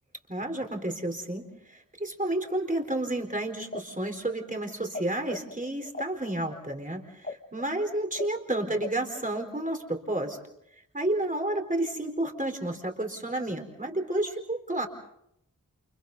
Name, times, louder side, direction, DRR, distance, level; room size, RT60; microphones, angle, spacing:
voice 1, 0.3-10.4 10.9-14.9, right 1 dB, 25° right, 4 dB, 4.2 m, -31 dB
sound 1, 3.6-5.0 5.3-9.7, left 3 dB, 35° left, 1.5 m, -39 dB
29.5 x 29.0 x 4.0 m, 0.76 s
wide cardioid pair, 65°, 32 cm